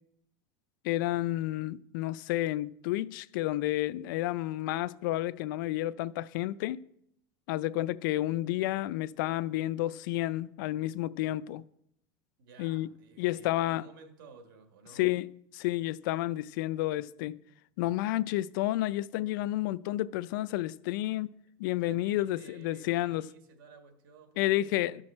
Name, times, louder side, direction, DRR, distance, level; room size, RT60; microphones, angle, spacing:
voice 1, 0.8-6.8 7.5-11.6 12.6-12.9 13.2-13.8 14.9-17.4 17.8-21.3 21.6-23.2 24.4-25.0, left 15 dB, 75° left, 0.4 m, -31 dB
voice 2, 12.4-15.1 21.8-25.0, right 4 dB, 85° right, 1.6 m, -54 dB
13.0 x 6.1 x 4.3 m
supercardioid pair, 135°, 11 cm